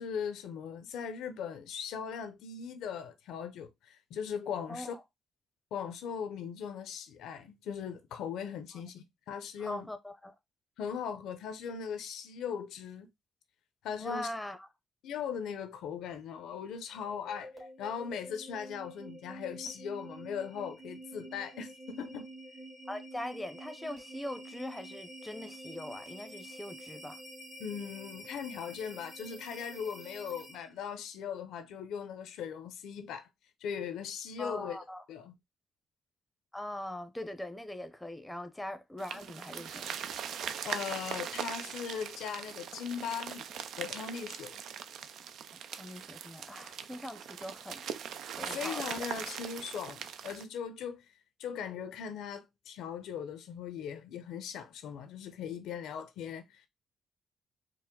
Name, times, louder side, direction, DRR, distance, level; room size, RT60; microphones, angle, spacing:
voice 1, 0.0-5.0 5.7-9.9 10.8-13.1 13.8-14.3 15.0-17.5 17.8-22.3 27.6-33.3 33.6-34.8 35.1-35.3 40.6-43.5 43.8-44.6 48.4-51.0 51.4-56.7, left 7 dB, 85° left, 0.6 m, -39 dB
voice 2, 4.7-5.0 8.7-8.8 9.6-10.3 14.0-14.7 22.9-27.2 34.4-35.0 36.5-40.0 45.7-47.8 48.3-49.1, left 1 dB, 5° left, 0.7 m, -41 dB
sound 1, 16.9-30.8, right 1 dB, 40° right, 2.1 m, -48 dB
sound 2, 39.0-50.4, right 8 dB, 75° right, 0.4 m, -41 dB
4.6 x 2.1 x 3.7 m
cardioid pair, 90°, 0 cm